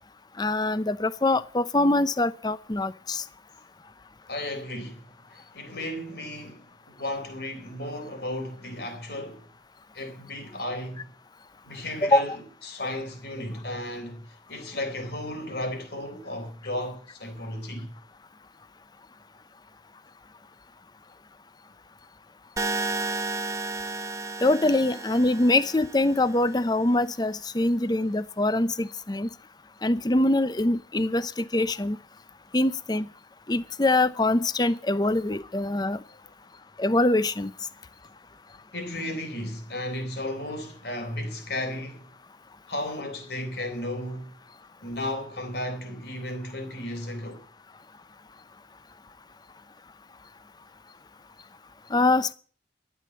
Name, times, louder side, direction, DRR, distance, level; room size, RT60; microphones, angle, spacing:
voice 1, 0.4-3.2 12.0-12.2 24.4-29.3 29.8-32.0 32.5-33.1 33.5-36.0 36.8-37.5 51.9-52.3, left 2 dB, 20° left, 0.6 m, -24 dB
voice 2, 4.3-9.5 9.9-11.1 11.6-17.9 38.7-42.1 42.7-44.3 44.8-47.4, left 1 dB, 60° left, 4.0 m, -34 dB
sound 1, 22.6-26.6, right 3 dB, 15° right, 1.0 m, -33 dB
12.5 x 8.5 x 8.4 m
head